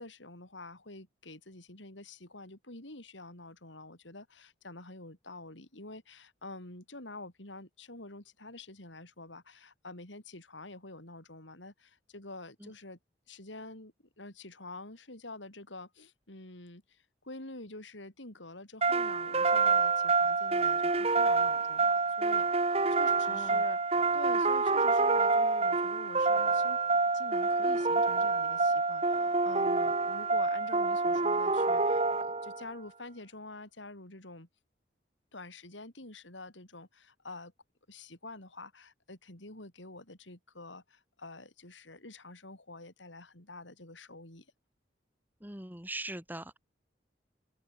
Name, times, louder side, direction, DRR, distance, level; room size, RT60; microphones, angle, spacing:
voice 1, 0.0-13.0 13.3-26.8 27.1-32.0 32.4-34.5 35.3-37.5 37.9-44.5, left 2 dB, 90° left, 5.8 m, -47 dB
sound 1, 18.8-32.7, right 3 dB, 35° right, 1.5 m, -27 dB
voice 2, 23.2-23.6 45.4-46.6, right 2 dB, 10° right, 3.3 m, -41 dB
open air
head